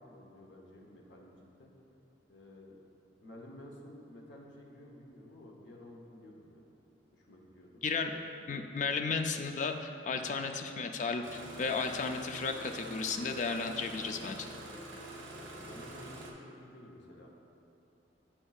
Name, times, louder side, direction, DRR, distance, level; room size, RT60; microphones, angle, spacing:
voice 1, 0.0-1.7 2.3-2.8 3.2-6.7 7.1-7.8 15.3-17.3, left 1 dB, 70° left, -2 dB, 0.9 m, -52 dB
voice 2, 7.8-8.2 8.5-14.5, left 4 dB, 40° left, 5 dB, 0.3 m, -34 dB
Engine starting, 11.2-16.3, right 1 dB, 80° right, 0.8 m, -46 dB
10.0 x 4.4 x 2.4 m, 2.9 s
head